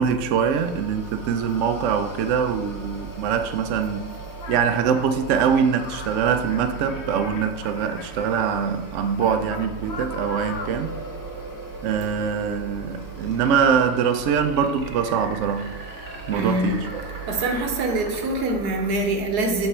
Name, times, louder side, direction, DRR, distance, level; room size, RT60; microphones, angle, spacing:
voice 1, 0.0-4.1 4.5-10.9 11.8-15.7 16.3-17.0, right 7 dB, 65° right, 0.7 m, -23 dB
sound 1, 0.6-18.9, equal, 30° left, 0.3 m, -41 dB
sound 2, 4.1-11.3 12.9-18.9, right 2 dB, 50° right, 1.3 m, -43 dB
sound 3, 4.4-8.5 9.0-10.9, left 5 dB, 65° left, 0.7 m, -39 dB
voice 2, 16.3-16.8 17.3-19.7, right 2 dB, 85° right, 1.4 m, -24 dB
7.4 x 3.4 x 4.3 m
omnidirectional pair, 1.6 m